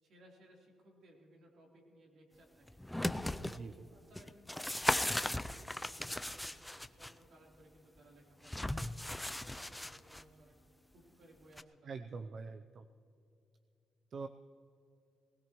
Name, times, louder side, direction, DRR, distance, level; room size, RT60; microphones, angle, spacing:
voice 1, 0.0-2.7 3.4-3.6 3.9-6.6 7.0-10.5 10.9-11.9, right 1 dB, 65° right, -2 dB, 3.6 m, -62 dB
sound 1, 2.7-3.6 4.2-7.1 8.4-10.2 11.6-11.7, left 1 dB, 5° left, 0.5 m, -37 dB
voice 2, 3.4-3.9 11.8-12.9 14.1-14.3, right 4 dB, 50° right, 8 dB, 0.5 m, -44 dB
20.0 x 19.0 x 3.1 m, 2.7 s
cardioid pair, 90°, 0 cm